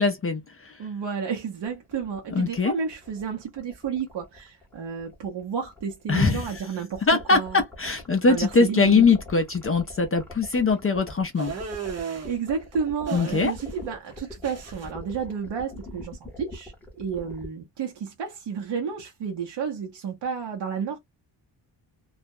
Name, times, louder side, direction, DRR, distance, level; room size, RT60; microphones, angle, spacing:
voice 1, 0.0-0.8 2.3-2.7 6.1-6.4 7.0-11.5 13.1-13.5, left 4 dB, 30° left, 0.5 m, -22 dB
voice 2, 0.8-7.6 8.3-9.1 11.9-21.0, right 6 dB, 65° right, 0.8 m, -31 dB
sound 1, 1.6-17.5, left 2 dB, 5° left, 0.8 m, -44 dB
sound 2, 11.4-12.3 13.1-13.8 14.1-14.9, right 6 dB, 35° right, 0.7 m, -35 dB
2.4 x 2.1 x 2.5 m
wide cardioid pair, 140°, 45 cm